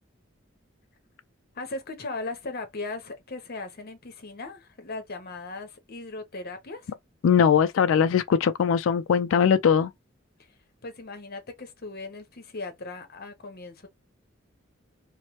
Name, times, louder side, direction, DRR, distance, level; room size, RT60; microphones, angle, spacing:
voice 1, 1.5-6.9 10.4-10.6 10.8-13.9, left 3 dB, 50° left, 0.8 m, -38 dB
voice 2, 7.2-9.9, left 7 dB, 70° left, 0.3 m, -21 dB
3.0 x 2.1 x 3.0 m
head